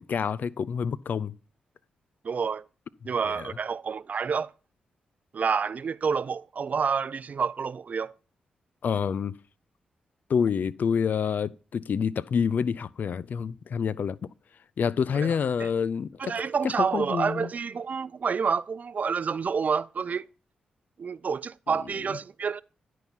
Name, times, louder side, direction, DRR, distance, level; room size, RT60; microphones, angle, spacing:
voice 1, 0.0-1.4 3.3-3.5 8.8-9.4 10.3-14.2 14.8-16.3 16.6-17.5, left 6 dB, 60° left, 0.4 m, -27 dB
voice 2, 2.2-2.6 3.0-4.5 5.3-8.1 15.1-15.7 16.2-20.3 21.0-22.6, right 6 dB, 50° right, 0.3 m, -28 dB
10.5 x 4.6 x 5.6 m
hypercardioid pair, 40°, 3 cm